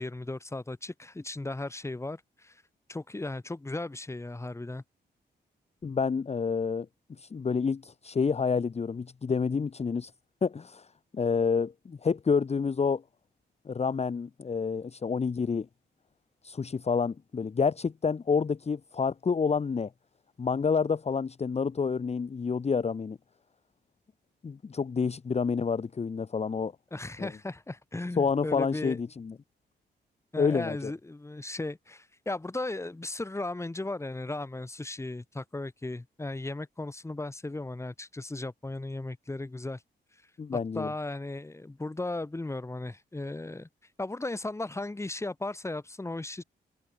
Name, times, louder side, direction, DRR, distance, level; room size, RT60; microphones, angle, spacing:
voice 1, 0.0-2.6 2.9-4.8 26.9-29.0 30.3-39.8 40.8-43.7 44.0-46.4, left 2 dB, 15° left, 1.8 m, -36 dB
voice 2, 5.8-6.9 7.2-10.1 10.4-10.9 11.1-13.0 13.6-15.7 16.4-19.9 20.4-23.2 24.4-26.7 27.2-27.3 28.2-29.3 30.4-30.9 40.4-40.9, left 5 dB, 35° left, 1.1 m, -28 dB
cardioid pair, 90°, 19 cm